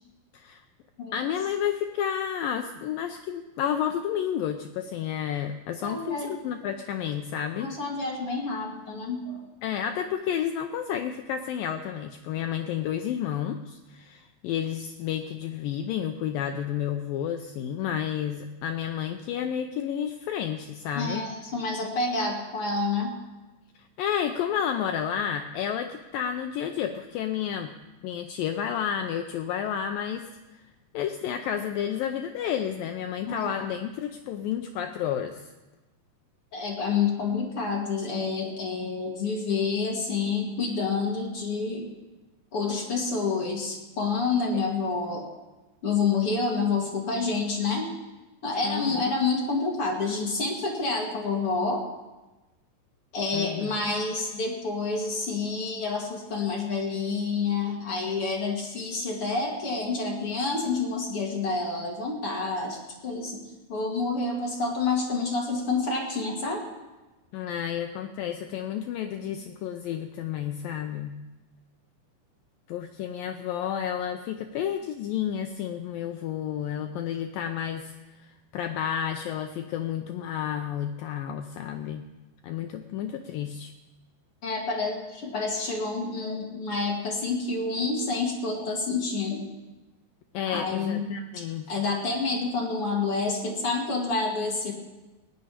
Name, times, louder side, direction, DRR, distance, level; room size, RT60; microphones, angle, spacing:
voice 1, 1.1-7.7 9.6-21.2 23.8-27.7 28.0-30.6 30.9-35.5 48.6-49.0 53.3-53.7 67.3-71.2 72.7-82.1 82.4-83.7 90.3-91.7, left 9 dB, 90° left, 6 dB, 2.0 m, -31 dB
voice 2, 5.8-6.4 7.6-9.4 21.0-23.2 33.3-33.5 36.5-41.9 42.5-45.3 45.8-47.9 48.4-51.9 53.1-63.4 63.7-66.7 84.4-89.4 90.5-91.1 91.7-94.7, left 4 dB, 45° left, 0 dB, 2.2 m, -28 dB
18.5 x 6.8 x 9.7 m, 1.1 s
omnidirectional pair, 4.9 m